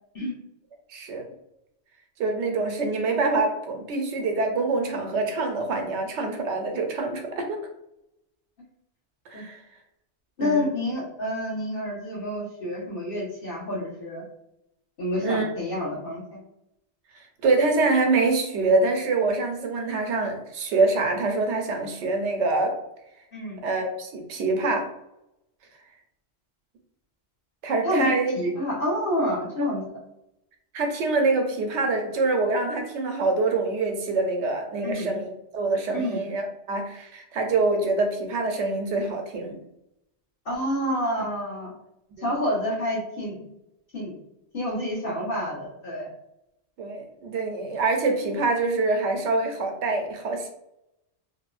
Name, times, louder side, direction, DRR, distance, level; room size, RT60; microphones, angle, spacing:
voice 1, 0.9-1.3 2.2-7.6 9.3-9.6 10.4-10.7 15.2-15.5 17.4-22.7 23.6-24.8 27.6-28.3 29.6-29.7 30.7-39.6 46.8-50.5, right 3 dB, 85° right, 4 dB, 0.9 m, -25 dB
voice 2, 10.4-14.2 15.0-16.4 23.3-23.6 27.8-29.8 34.8-35.1 35.9-36.2 40.4-41.7 42.2-43.5 43.9-44.2 44.5-46.1, equal, 55° left, -6 dB, 1.2 m, -28 dB
2.9 x 2.0 x 2.4 m, 0.82 s
omnidirectional pair, 1.2 m